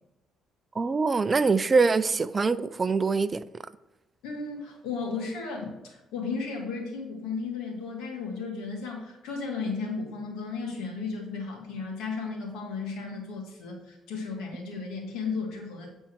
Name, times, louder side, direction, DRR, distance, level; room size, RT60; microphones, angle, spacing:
voice 1, 0.7-3.4, right 4 dB, 30° right, 14 dB, 0.5 m, -24 dB
voice 2, 4.2-15.9, left 4 dB, 85° left, 0 dB, 2.2 m, -34 dB
9.1 x 4.4 x 4.7 m, 0.99 s
cardioid pair, 85°, 0 cm